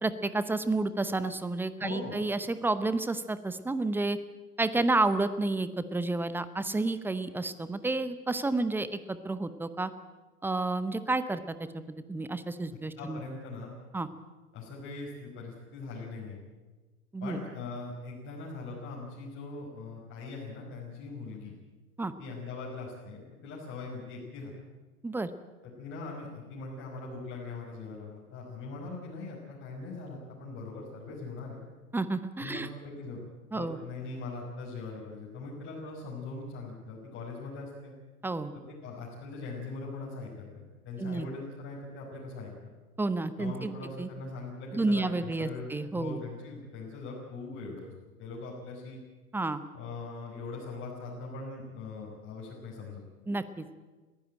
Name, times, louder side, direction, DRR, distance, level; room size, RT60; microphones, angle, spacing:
voice 1, 0.0-4.2 4.6-9.9 10.4-13.2 13.9-14.1 17.1-17.4 22.0-22.1 25.0-25.3 31.9-32.7 33.5-33.8 38.2-38.5 41.0-41.3 43.0-44.1 44.7-46.2 49.3-49.6 53.3-53.7, right 2 dB, 5° right, 13 dB, 0.8 m, -30 dB
voice 2, 1.8-2.2 13.0-13.7 14.5-16.4 17.2-21.6 22.2-24.5 25.6-31.6 32.4-33.2 33.5-37.9 38.5-42.7 43.4-45.7 45.9-47.9 48.2-49.0 49.7-53.0, left 3 dB, 25° left, -4 dB, 5.6 m, -41 dB
21.0 x 16.0 x 9.0 m, 1.3 s
figure-of-eight pair, 100°, 45 cm